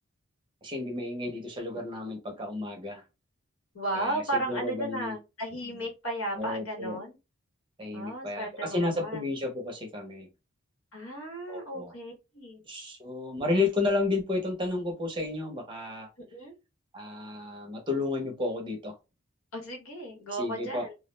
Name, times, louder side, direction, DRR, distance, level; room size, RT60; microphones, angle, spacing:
voice 1, 0.6-3.0 3.9-5.1 6.4-7.0 7.8-10.3 11.5-11.9 12.7-16.1 16.9-18.9 20.3-20.9, left 2 dB, 25° right, 0.6 m, -32 dB
voice 2, 3.7-7.2 7.9-9.3 10.9-12.6 16.3-16.5 19.5-20.9, right 1 dB, 85° left, 1.1 m, -35 dB
2.3 x 2.0 x 3.1 m
head